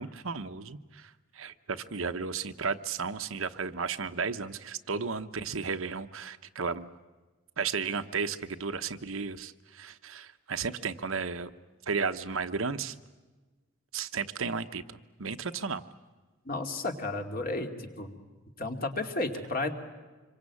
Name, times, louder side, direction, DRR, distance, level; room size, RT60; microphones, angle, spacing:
voice 1, 0.0-6.9 7.6-11.5 11.9-13.0 13.9-15.8, right 5 dB, 70° right, 9 dB, 1.0 m, -34 dB
voice 2, 16.4-18.2 18.6-19.7, left 2 dB, 40° left, 4 dB, 2.5 m, -33 dB
26.5 x 23.5 x 8.5 m, 1.3 s
head